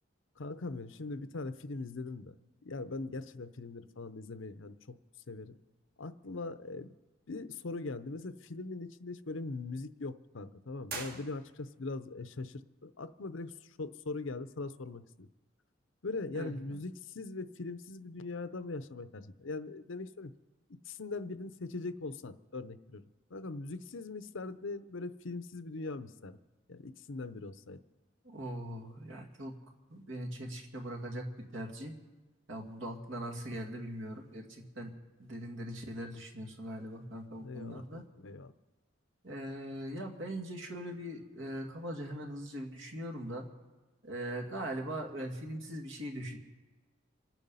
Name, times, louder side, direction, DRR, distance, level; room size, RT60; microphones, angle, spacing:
voice 1, 0.4-2.3 2.6-5.0 5.3-5.6 6.0-6.9 7.3-15.3 16.0-20.3 20.7-23.0 23.3-26.4 26.7-27.8 37.4-38.5, left 3 dB, 65° left, 12 dB, 0.7 m, -41 dB
sound 1, 10.8-11.9, right 4 dB, 45° right, 1.7 m, -43 dB
voice 2, 16.3-16.8 28.2-29.6 29.9-31.9 32.5-34.9 35.2-38.0 39.2-43.5 44.0-46.4, right 1 dB, 65° right, 1 dB, 2.4 m, -41 dB
27.0 x 9.1 x 5.6 m, 1.3 s
head